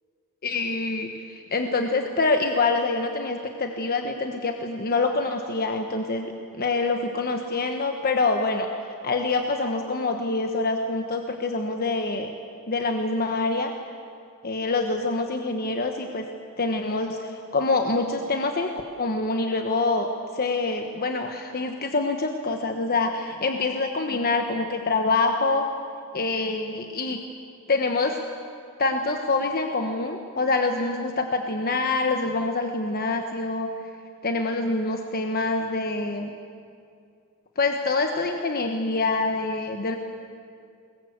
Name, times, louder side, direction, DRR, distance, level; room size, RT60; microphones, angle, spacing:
voice 1, 0.4-6.3 6.6-8.7 9.0-12.3 12.7-13.7 14.4-16.2 16.6-18.7 19.0-20.1 20.3-25.6 26.1-27.2 27.7-28.2 28.8-33.7 34.2-36.3 37.6-40.0, left 3 dB, 45° left, 4 dB, 1.2 m, -25 dB
22.0 x 19.5 x 8.1 m, 2.4 s
head